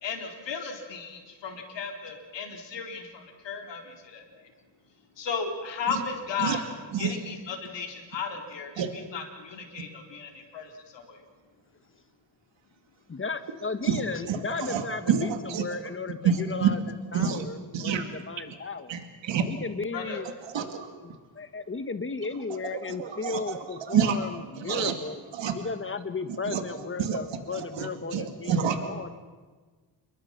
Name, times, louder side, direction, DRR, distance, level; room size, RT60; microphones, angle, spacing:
voice 1, 0.0-4.2 5.2-6.6 7.0-11.2 19.9-20.2, left 5 dB, 75° left, 2 dB, 4.1 m, -35 dB
voice 2, 13.1-16.8 17.1-19.0 19.5-20.3 21.0-25.2 25.5-29.1, left 4 dB, 30° left, 10 dB, 1.4 m, -35 dB
voice 3, 14.3-15.6 16.2-16.7 17.1-17.4 17.7-18.1 18.9-19.5 20.5-20.9 23.0-23.6 23.9-24.2 24.6-24.9 25.4-25.6 26.5-26.6 27.0-27.2 27.5-28.8, right 8 dB, 80° right, 6 dB, 2.3 m, -27 dB
28.0 x 22.5 x 5.9 m, 1.4 s
cardioid pair, 95°, 44 cm